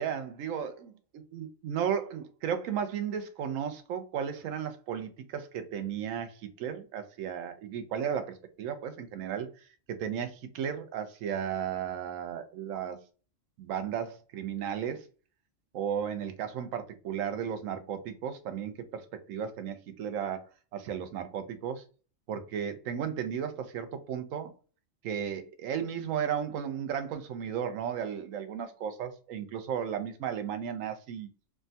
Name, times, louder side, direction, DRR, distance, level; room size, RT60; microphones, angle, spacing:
voice 1, 0.0-6.3 6.6-9.5 9.9-13.0 13.6-15.1 15.7-20.4 20.7-21.8 22.3-24.5 25.0-31.3, right 8 dB, 90° right, 1.0 m, -34 dB
3.3 x 2.1 x 2.6 m
omnidirectional pair, 1.3 m